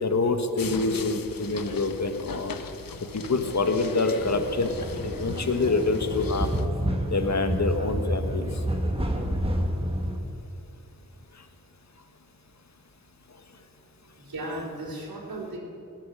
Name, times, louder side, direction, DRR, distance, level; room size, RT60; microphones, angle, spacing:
voice 1, 0.0-2.6 3.1-6.5 7.1-8.6 11.3-11.4, left 3 dB, 50° left, 7 dB, 1.3 m, -26 dB
sound 1, 0.6-6.7, left 5 dB, 70° left, 0.9 m, -39 dB
sound 2, 4.2-10.2, equal, 15° right, 1.6 m, -29 dB
voice 2, 14.2-15.6, right 1 dB, 85° right, -8 dB, 3.7 m, -35 dB
18.5 x 10.5 x 6.3 m, 2.9 s
wide cardioid pair, 90°, 35 cm